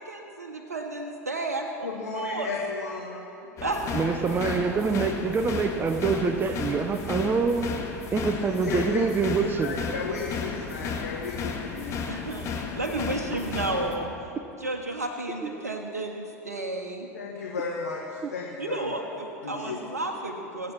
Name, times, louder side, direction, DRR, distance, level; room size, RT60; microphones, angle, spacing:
voice 1, 0.0-2.6 3.3-4.0 12.1-14.1 14.6-17.1 18.6-20.7, right 2 dB, 80° right, 2 dB, 1.1 m, -32 dB
voice 2, 1.8-3.2 4.4-4.5 8.6-9.0 9.6-12.0 17.1-19.0 19.4-19.8, left 5 dB, 75° left, -2 dB, 1.5 m, -34 dB
sound 1, 3.6-13.9, left 5 dB, 35° left, 1.8 m, -34 dB
voice 3, 3.9-7.8 8.1-9.8 15.4-15.6, right 5 dB, 25° right, 8 dB, 0.8 m, -25 dB
21.5 x 8.5 x 6.0 m, 2.8 s
figure-of-eight pair, 75°, 8 cm